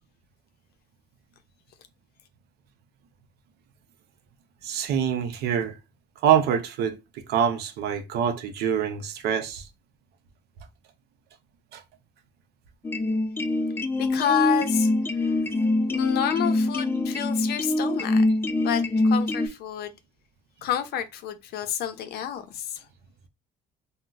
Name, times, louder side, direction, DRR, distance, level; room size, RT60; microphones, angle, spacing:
voice 1, 4.6-5.8 6.2-9.7 11.7-11.8, right 8 dB, 75° right, 0.6 m, -25 dB
sound 1, 12.8-19.5, left 2 dB, 15° left, 0.3 m, -24 dB
voice 2, 14.0-14.9 15.2-15.3 15.9-18.2 18.6-20.0 20.6-22.9, left 10 dB, 70° left, 0.5 m, -29 dB
3.8 x 2.0 x 2.3 m
cardioid pair, 110°, 17 cm